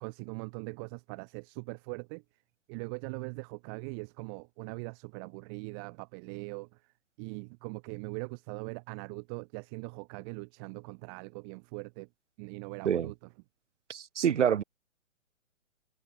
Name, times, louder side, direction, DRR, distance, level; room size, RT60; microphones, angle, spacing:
voice 1, 0.0-2.2 2.7-6.9 7.2-12.1 12.4-13.3, right 37 dB, 20° right, 0.9 m, -41 dB
voice 2, 13.9-14.6, right 8 dB, 65° right, 0.6 m, -26 dB
figure-of-eight pair, 125°, 39 cm